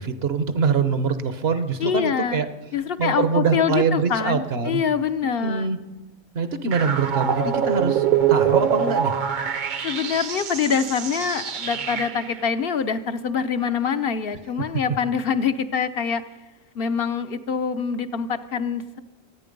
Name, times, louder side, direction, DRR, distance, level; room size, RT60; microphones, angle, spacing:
voice 1, 0.0-2.5 3.0-4.8 5.4-5.8 6.3-9.1, right 5 dB, 70° right, 10 dB, 1.2 m, -24 dB
voice 2, 1.8-2.4 2.7-5.7 9.8-16.2 16.7-19.0, left 6 dB, 65° left, 9 dB, 0.9 m, -25 dB
sound 1, 6.7-12.4, right 8 dB, 50° right, 0.8 m, -24 dB
24.0 x 9.2 x 5.3 m, 1.1 s
omnidirectional pair, 1.1 m